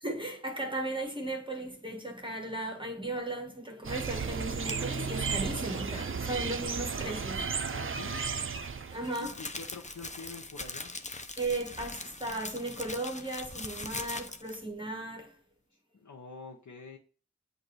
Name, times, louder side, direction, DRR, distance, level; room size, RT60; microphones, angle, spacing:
voice 1, 0.0-7.6 8.9-9.3 11.4-15.4, right 2 dB, 15° right, 1.3 m, -36 dB
sound 1, 3.8-9.1, right 5 dB, 45° right, 0.5 m, -34 dB
sound 2, 4.6-5.0 8.1-14.6, left 3 dB, 25° left, 0.6 m, -41 dB
voice 2, 7.7-8.2 9.2-11.0 15.9-17.0, left 4 dB, 80° left, 0.8 m, -46 dB
7.8 x 2.6 x 4.7 m
wide cardioid pair, 50°, 29 cm